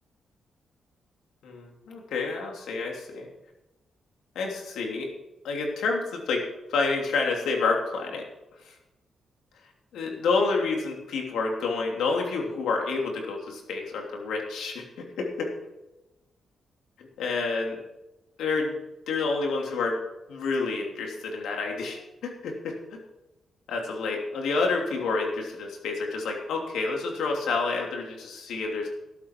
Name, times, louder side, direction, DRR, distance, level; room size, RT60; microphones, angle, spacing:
voice 1, 1.4-3.3 4.3-5.1 5.4-6.4 6.7-8.2 8.6-8.7 9.9-14.8 15.2-15.5 17.2-17.8 18.4-18.8 19.1-20.0 20.3-22.8 23.7-28.9, left 4 dB, 90° left, 1 dB, 3.0 m, -28 dB
18.5 x 8.5 x 4.7 m, 0.97 s
cardioid pair, 105°, 0 cm